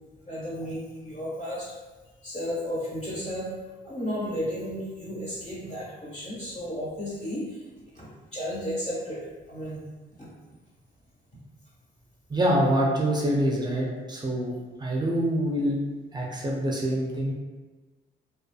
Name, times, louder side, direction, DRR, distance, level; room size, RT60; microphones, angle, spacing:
voice 1, 0.2-1.8 2.0-3.5 3.8-9.8 10.2-10.3, equal, 35° left, -7 dB, 1.3 m, -34 dB
voice 2, 12.3-15.8 16.1-17.3, right 1 dB, 20° right, -2 dB, 0.5 m, -25 dB
2.5 x 2.4 x 2.3 m, 1.3 s
cardioid pair, 90°, 20 cm